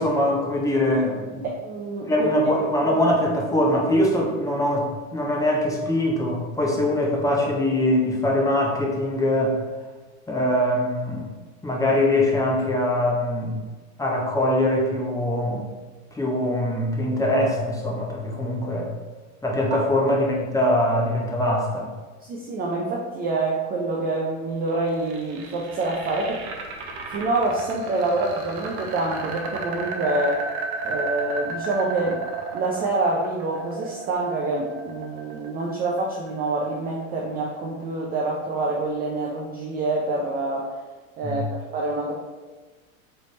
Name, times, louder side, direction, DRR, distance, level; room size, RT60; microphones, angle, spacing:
voice 1, 0.0-1.5 2.1-9.6 10.3-11.3 11.6-13.6 14.0-15.7 16.1-18.9 19.4-21.9 41.2-41.4, left 1 dB, 10° left, -2 dB, 0.7 m, -22 dB
voice 2, 1.4-2.3 19.7-19.8 22.2-26.4 27.1-30.4 30.8-32.2 32.5-40.7 41.2-41.4 41.7-42.1, right 2 dB, 25° right, -2 dB, 0.4 m, -26 dB
sound 1, 24.7-36.7, right 3 dB, 50° right, 0.9 m, -34 dB
3.9 x 3.3 x 3.1 m, 1.3 s
hypercardioid pair, 110°, 42 cm